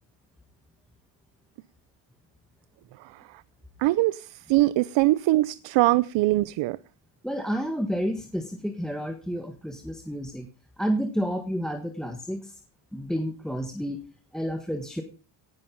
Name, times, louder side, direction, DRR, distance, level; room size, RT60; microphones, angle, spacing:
voice 1, 3.8-6.8, right 18 dB, 70° right, 0.8 m, -22 dB
voice 2, 7.2-10.5 10.8-12.6 12.9-14.0 14.3-15.0, equal, ahead, 1.6 m, -30 dB
18.0 x 11.0 x 5.4 m
cardioid pair, 140°, 46 cm